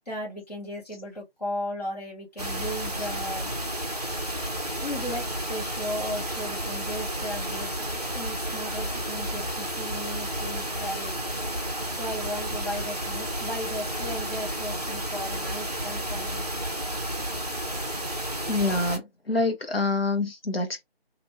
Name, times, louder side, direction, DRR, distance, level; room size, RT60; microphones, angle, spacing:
voice 1, 0.0-3.9 4.8-11.1 11.9-16.5, equal, 40° left, 1.6 m, -36 dB
sound 1, 2.4-19.0, right 1 dB, 40° right, 0.6 m, -31 dB
voice 2, 18.5-20.8, left 2 dB, 65° left, 1.1 m, -26 dB
2.8 x 2.6 x 3.1 m
figure-of-eight pair, 165°, 32 cm